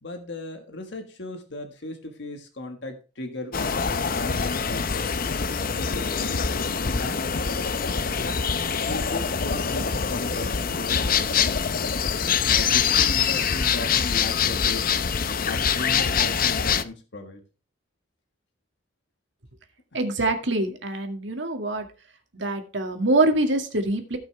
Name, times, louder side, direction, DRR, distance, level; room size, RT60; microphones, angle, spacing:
voice 1, 0.0-5.1 5.6-6.5 6.9-7.6 8.1-8.4 8.8-11.6 12.5-14.9 15.2-17.4, left 2 dB, 65° left, 5 dB, 1.6 m, -37 dB
sound 1, 3.5-16.8, left 6 dB, 50° left, 0.7 m, -24 dB
voice 2, 19.9-21.9 22.3-24.2, right 2 dB, 70° right, 4 dB, 2.1 m, -24 dB
17.0 x 6.1 x 3.3 m, 0.32 s
head